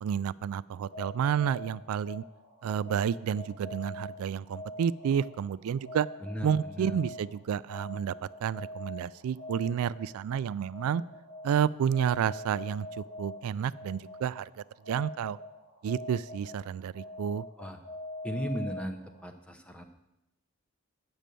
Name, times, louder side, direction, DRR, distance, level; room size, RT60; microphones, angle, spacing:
voice 1, 0.0-2.2 2.6-6.1 6.4-11.0 11.4-15.4 15.8-17.4, right 8 dB, 80° right, 18 dB, 0.3 m, -30 dB
sound 1, 0.8-19.3, left 1 dB, 65° left, 3.8 m, -45 dB
voice 2, 6.2-7.0 17.6-17.8 18.2-19.8, equal, 5° left, 6 dB, 0.7 m, -36 dB
9.0 x 6.2 x 6.8 m, 0.90 s
head